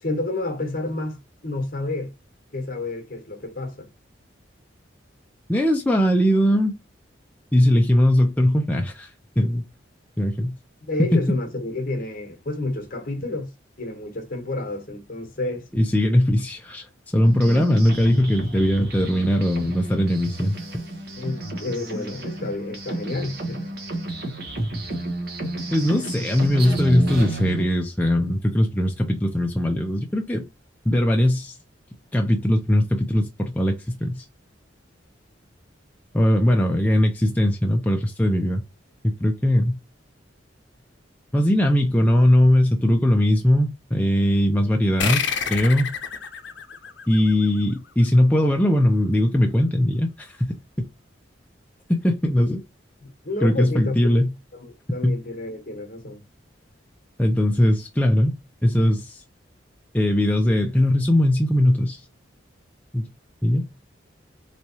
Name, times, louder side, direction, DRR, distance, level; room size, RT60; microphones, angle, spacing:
voice 1, 0.0-1.2 1.4-2.1 2.5-3.9 10.8-13.5 13.8-15.7 21.2-23.7 53.2-54.0 54.5-56.2, left 2 dB, 45° left, 1.0 m, -30 dB
voice 2, 5.5-6.8 7.5-9.6 10.2-10.6 11.0-11.2 15.7-20.6 25.7-30.5 30.9-31.6 32.1-34.3 36.1-38.6 39.0-39.8 41.3-45.2 45.5-45.9 47.1-50.5 52.0-52.6 53.4-54.3 55.0-55.2 57.2-58.4 58.6-59.2 59.9-62.0 62.9-63.0 63.4-63.7, left 1 dB, 10° left, 0.4 m, -20 dB
sound 1, 17.2-27.6, right 2 dB, 55° right, 1.1 m, -31 dB
sound 2, 45.0-48.0, left 7 dB, 65° left, 0.7 m, -29 dB
3.4 x 3.0 x 2.8 m
head